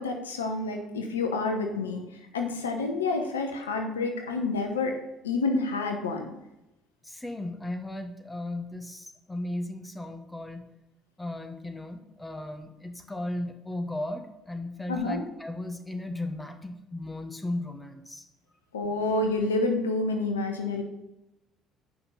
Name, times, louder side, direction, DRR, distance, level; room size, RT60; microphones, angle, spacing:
voice 1, 0.0-2.0 2.3-5.0 5.2-6.3 14.9-15.2 18.7-20.8, left 3 dB, 90° left, 4 dB, 1.0 m, -28 dB
voice 2, 7.0-10.7 11.2-18.2, left 1 dB, 10° left, 6 dB, 1.3 m, -36 dB
8.2 x 5.7 x 5.5 m, 0.93 s
hypercardioid pair, 60°, 0 cm